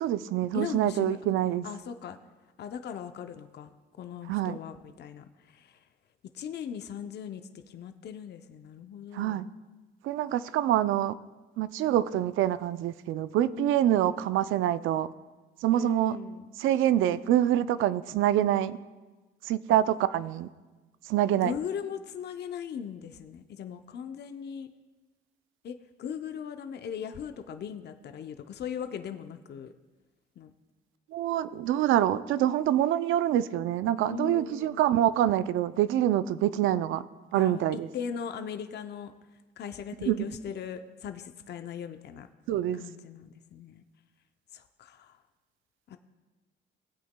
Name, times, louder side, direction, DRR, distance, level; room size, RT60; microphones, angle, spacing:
voice 1, 0.0-1.6 4.3-4.6 9.1-9.5 10.0-11.1 11.6-15.1 15.6-16.2 16.6-18.8 19.5-20.5 21.1-21.5 31.1-37.0 37.3-37.9 40.1-40.2 42.5-42.8, right 12 dB, 85° right, 15 dB, 0.4 m, -26 dB
voice 2, 0.5-1.4 1.6-2.2 2.6-5.9 6.3-9.5 13.5-14.1 15.7-16.5 21.4-24.7 25.6-29.7 30.4-30.5 34.1-34.9 37.3-39.1 39.6-42.3 42.7-43.8 44.5-45.2 45.9-46.0, left 7 dB, 60° left, 8 dB, 0.6 m, -39 dB
18.0 x 8.4 x 2.2 m, 1.2 s
cardioid pair, 90°, 20 cm